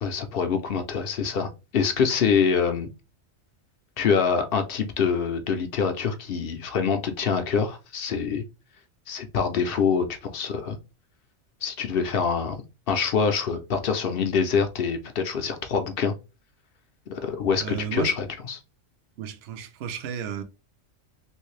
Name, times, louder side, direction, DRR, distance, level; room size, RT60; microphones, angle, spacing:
voice 1, 0.0-2.9 4.0-8.4 9.1-10.1 10.3-10.8 11.6-12.6 12.9-16.1 17.1-18.6, left 6 dB, 55° left, 0.7 m, -25 dB
voice 2, 17.6-18.2 19.2-20.4, right 8 dB, 60° right, 0.8 m, -33 dB
3.2 x 2.7 x 3.1 m
omnidirectional pair, 1.3 m